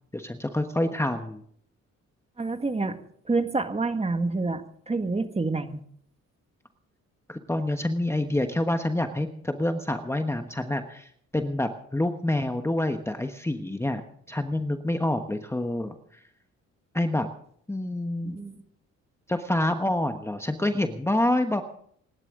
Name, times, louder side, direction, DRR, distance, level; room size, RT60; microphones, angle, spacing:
voice 1, 0.1-1.4 7.3-14.0 14.3-16.0 16.9-17.3 17.7-18.3 19.3-21.6, left 1 dB, 10° left, 6 dB, 1.2 m, -27 dB
voice 2, 2.4-3.0 3.2-5.8 18.2-18.6, right 3 dB, 20° right, 7 dB, 1.7 m, -28 dB
26.5 x 12.0 x 3.8 m, 0.63 s
cardioid pair, 90°, 30 cm